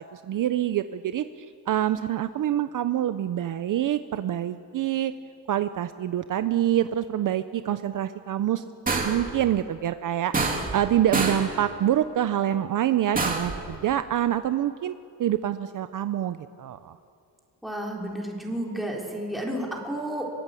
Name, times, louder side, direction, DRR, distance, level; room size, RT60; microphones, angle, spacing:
voice 1, 0.0-5.1 5.5-8.6 9.0-14.9 15.2-17.0, right 11 dB, 55° right, 11 dB, 0.7 m, -26 dB
sound 1, 8.9-9.3 10.3-10.9 11.1-11.5 13.1-13.6, right 3 dB, 20° right, 2.8 m, -26 dB
voice 2, 17.6-20.3, right 1 dB, ahead, -2 dB, 3.8 m, -31 dB
25.5 x 22.0 x 8.4 m, 2.4 s
cardioid pair, 165°, 39 cm